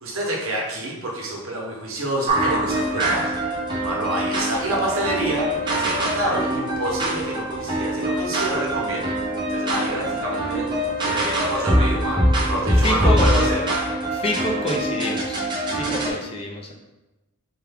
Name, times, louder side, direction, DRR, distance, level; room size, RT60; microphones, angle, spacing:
voice 1, 0.0-3.4 3.8-9.0 9.5-13.6, right 1 dB, 65° right, -2 dB, 1.0 m, -27 dB
sound 1, 2.3-16.1, right 1 dB, 20° right, 0.7 m, -23 dB
voice 2, 12.8-13.3 14.1-15.4 15.7-16.7, left 1 dB, 25° left, 1 dB, 0.4 m, -27 dB
4.5 x 2.3 x 3.4 m, 1.0 s
head